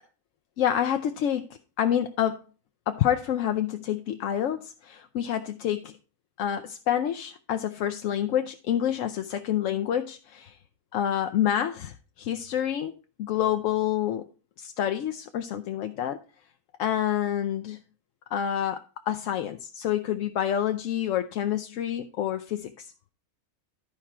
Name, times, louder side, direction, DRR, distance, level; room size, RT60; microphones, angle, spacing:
voice 1, 0.6-1.5 1.8-2.4 2.9-5.9 6.4-10.6 10.9-12.9 13.2-14.3 14.6-16.2 16.8-17.8 18.3-22.9, left 10 dB, 70° left, 0.8 m, -28 dB
11.5 x 4.8 x 4.2 m
omnidirectional pair, 1.6 m